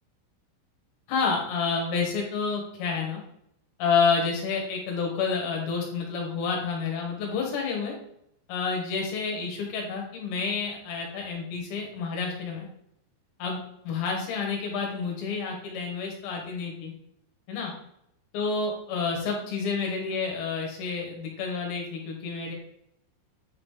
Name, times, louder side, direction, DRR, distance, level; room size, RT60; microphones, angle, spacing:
voice 1, 1.1-3.2 3.8-7.9 8.5-12.7 13.4-13.6 13.8-16.9 17.5-17.7 18.3-22.5, left 5 dB, 70° left, 0 dB, 3.3 m, -29 dB
8.7 x 4.0 x 3.6 m, 0.74 s
omnidirectional pair, 5.5 m